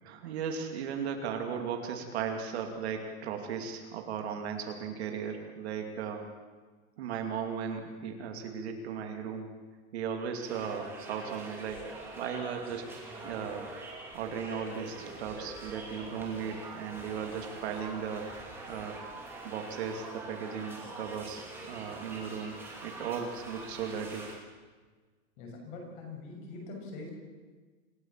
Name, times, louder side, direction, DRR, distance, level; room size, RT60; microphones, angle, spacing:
voice 1, 0.0-6.3 7.0-9.5 9.9-12.8 13.2-13.7 14.1-19.0 19.4-22.5 22.8-24.3, right 7 dB, 45° right, 4 dB, 2.6 m, -36 dB
sound 1, 10.4-24.3, right 2 dB, 5° right, 2.6 m, -44 dB
voice 2, 25.4-27.2, left 3 dB, 35° left, 0 dB, 6.6 m, -43 dB
26.5 x 14.5 x 7.5 m, 1.4 s
supercardioid pair, 180°, 44 cm